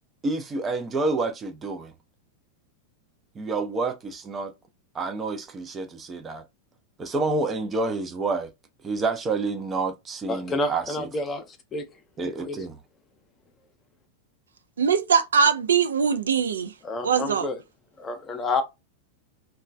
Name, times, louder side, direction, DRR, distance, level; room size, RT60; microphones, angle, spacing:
voice 1, 0.2-1.9 3.3-4.5 4.9-6.4 7.0-8.5 8.8-11.1 12.2-12.7, right 3 dB, 20° right, 0.6 m, -28 dB
voice 2, 10.3-11.9 12.4-12.6 16.8-17.6 18.0-18.6, left 3 dB, 20° left, 0.7 m, -29 dB
voice 3, 14.8-16.7 17.0-17.5, right 6 dB, 70° right, 0.4 m, -21 dB
3.0 x 2.3 x 2.4 m
figure-of-eight pair, 90°, 0 cm